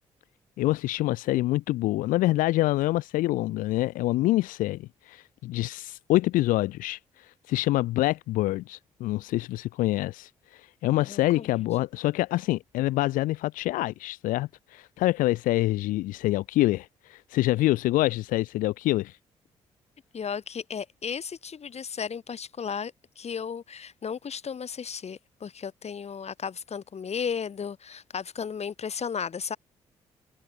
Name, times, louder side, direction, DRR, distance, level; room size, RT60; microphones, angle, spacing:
voice 1, 0.6-19.2, left 17 dB, 80° left, 2.0 m, -26 dB
voice 2, 11.0-11.5 20.1-29.6, left 6 dB, 50° left, 4.4 m, -34 dB
hypercardioid pair, 50°, 14 cm